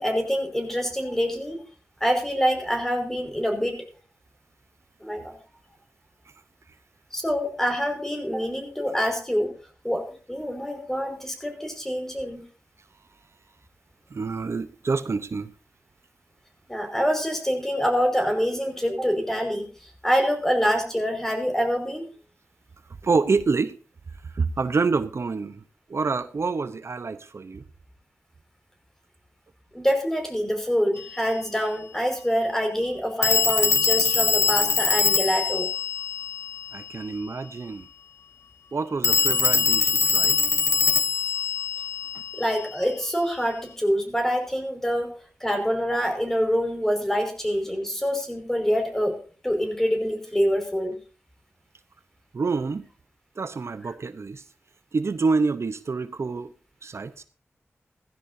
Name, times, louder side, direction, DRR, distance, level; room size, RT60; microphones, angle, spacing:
voice 1, 0.0-1.6 2.0-3.8 5.0-5.4 7.1-9.5 9.8-12.4 16.7-19.7 20.0-22.0 29.7-35.7 42.3-45.1 45.4-49.2 49.4-51.0, equal, 10° left, 5.3 m, -25 dB
voice 2, 14.1-15.5 23.0-23.8 24.2-25.6 25.9-27.6 36.7-37.9 38.7-40.4 52.3-52.9 53.4-54.4 54.9-56.5 56.8-57.2, right 4 dB, 60° right, 0.8 m, -27 dB
Telephone, 31.0-31.1 33.2-36.9 39.0-42.7, left 5 dB, 55° left, 0.7 m, -23 dB
17.5 x 15.0 x 2.7 m
wide cardioid pair, 90°, 5 cm